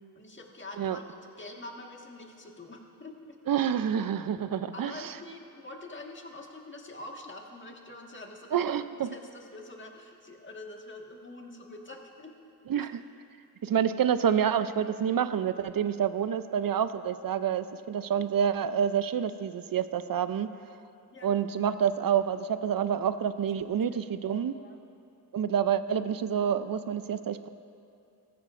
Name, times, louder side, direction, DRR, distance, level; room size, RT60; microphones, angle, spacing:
voice 1, 0.1-1.0 1.4-3.4 4.7-8.6 9.0-12.3 12.7-12.9 13.7-13.8 21.1-21.3 23.9-24.8, left 2 dB, 30° left, 1 dB, 1.7 m, -45 dB
voice 2, 3.5-5.1 8.5-9.1 12.7-12.9 13.6-20.5 21.2-24.5 25.3-27.5, right 8 dB, 60° right, 12 dB, 0.6 m, -28 dB
18.5 x 15.0 x 2.6 m, 2.6 s
cardioid pair, 60°, 39 cm